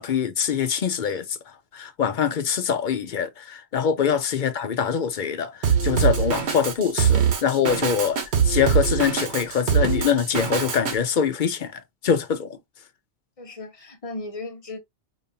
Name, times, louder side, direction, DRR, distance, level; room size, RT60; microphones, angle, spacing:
voice 1, 0.0-1.4 1.7-8.2 8.4-12.6, left 7 dB, 55° left, 0.7 m, -24 dB
Drum kit, 5.6-11.0, right 7 dB, 75° right, 1.2 m, -23 dB
voice 2, 13.4-14.8, left 2 dB, 35° left, 1.0 m, -36 dB
5.2 x 2.6 x 2.6 m
omnidirectional pair, 1.1 m